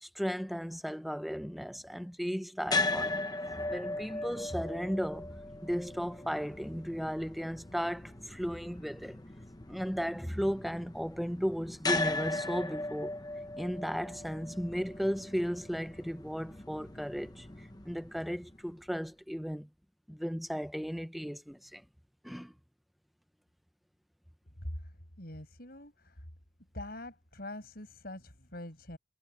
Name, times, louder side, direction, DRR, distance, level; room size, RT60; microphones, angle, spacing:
voice 1, 0.0-3.2 3.7-5.3 5.6-9.2 9.7-13.2 13.6-17.5 17.8-19.7 20.1-21.8 22.2-22.5, equal, ahead, 0.9 m, -35 dB
sound 1, 2.7-18.8, left 2 dB, 20° left, 1.1 m, -38 dB
voice 2, 24.6-26.3 26.7-29.0, left 1 dB, 55° left, 6.3 m, -44 dB
head